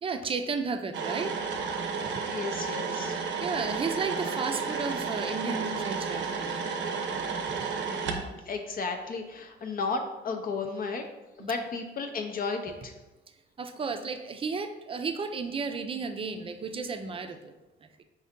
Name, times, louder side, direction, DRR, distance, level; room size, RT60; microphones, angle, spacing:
voice 1, 0.0-1.4 2.0-2.1 3.4-7.2 7.9-8.0 11.4-11.5 13.6-17.5 17.8-17.9, right 4 dB, 25° right, 7 dB, 0.4 m, -33 dB
sound 1, 0.9-8.2, right 5 dB, 70° right, 0.6 m, -32 dB
voice 2, 2.3-3.2 7.9-11.0 11.4-12.9, left 4 dB, 45° left, 4 dB, 0.5 m, -34 dB
4.6 x 2.7 x 3.5 m, 1.1 s
cardioid pair, 90°, 20 cm